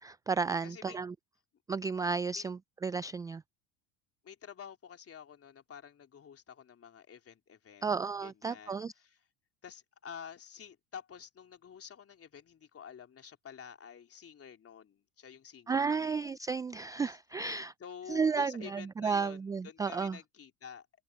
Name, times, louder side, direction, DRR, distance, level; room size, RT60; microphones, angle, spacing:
voice 1, 0.0-1.1 1.7-3.4 7.8-8.9 15.7-17.7 18.1-20.2, right 5 dB, 10° right, 0.3 m, -33 dB
voice 2, 0.6-1.0 2.3-2.5 4.2-7.9 8.2-9.2 9.6-16.1 17.1-17.2 17.8-19.4 19.6-20.9, left 7 dB, 30° left, 3.5 m, -49 dB
hypercardioid pair, 80°, 46 cm